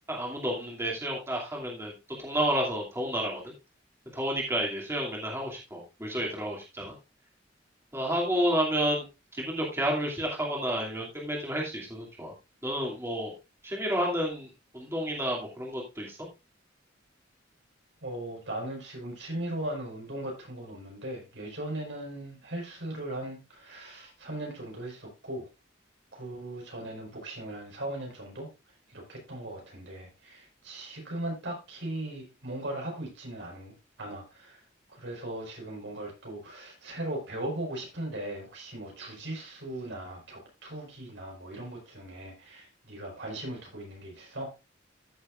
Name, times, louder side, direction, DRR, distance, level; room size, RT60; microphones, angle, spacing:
voice 1, 0.1-1.9 2.2-3.4 4.1-6.9 7.9-9.0 9.3-12.3 12.6-13.3 13.6-14.5 14.7-16.2, equal, 15° right, 2.6 m, -30 dB
voice 2, 18.0-25.5 26.1-28.5 28.9-34.6 34.9-44.5, right 1 dB, 70° right, 5.2 m, -38 dB
14.5 x 7.0 x 2.5 m
head